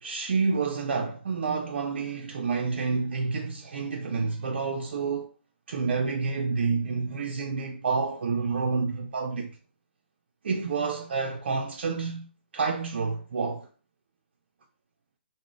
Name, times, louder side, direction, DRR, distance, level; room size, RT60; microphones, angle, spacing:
voice 1, 0.0-5.3 5.7-9.6 10.4-12.3 12.5-13.7, right 4 dB, 70° right, 0.4 m, -29 dB
2.4 x 2.0 x 3.5 m
hypercardioid pair, 135°, 6 cm